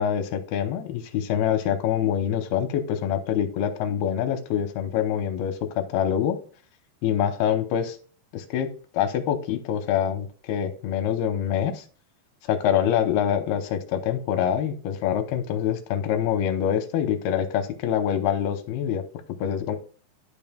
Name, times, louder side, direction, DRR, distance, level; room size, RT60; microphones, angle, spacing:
voice 1, 0.0-6.4 7.0-8.0 8.3-8.7 8.9-11.8 12.5-19.0 19.4-19.8, left 9 dB, 80° left, 8 dB, 2.6 m, -25 dB
12.0 x 5.3 x 2.2 m, 0.41 s
omnidirectional pair, 4.7 m